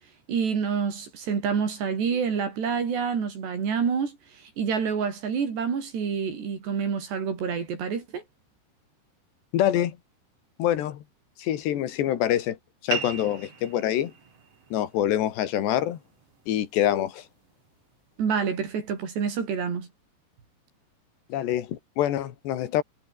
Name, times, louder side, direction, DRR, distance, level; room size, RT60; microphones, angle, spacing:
voice 1, 0.3-8.2 18.2-19.9, right 6 dB, 70° right, 6.7 m, -28 dB
voice 2, 9.5-10.0 10.6-11.0 11.4-12.6 12.8-14.1 14.7-16.0 16.5-17.3 21.3-22.8, left 11 dB, 75° left, 4.1 m, -25 dB
sound 1, 12.9-17.9, right 6 dB, 40° right, 3.8 m, -39 dB
omnidirectional pair, 5.0 m